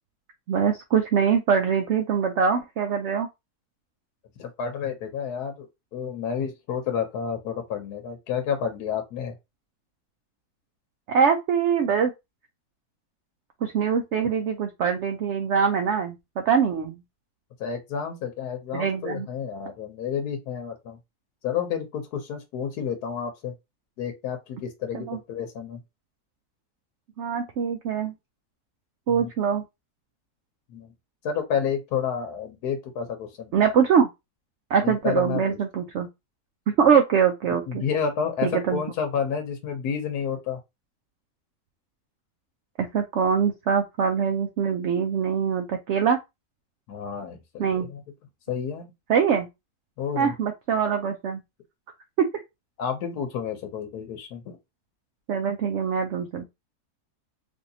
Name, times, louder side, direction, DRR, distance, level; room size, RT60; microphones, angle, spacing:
voice 1, 0.5-3.3 11.1-12.1 13.6-17.0 18.7-19.3 24.9-25.2 27.2-28.1 29.1-29.6 33.5-34.1 34.7-36.1 36.8-37.8 38.4-38.8 42.8-46.2 47.6-47.9 49.1-49.5 50.2-51.4 55.3-56.4, right 7 dB, 70° right, 0.7 m, -23 dB
voice 2, 4.4-5.7 5.9-9.3 17.6-21.0 21.4-23.5 24.0-25.8 29.1-29.3 30.7-30.9 31.2-33.5 34.8-35.6 37.7-40.6 46.9-48.0 48.5-48.9 50.0-50.3 52.8-54.6, left 7 dB, 85° left, 1.3 m, -30 dB
3.4 x 2.7 x 2.7 m
omnidirectional pair, 1.7 m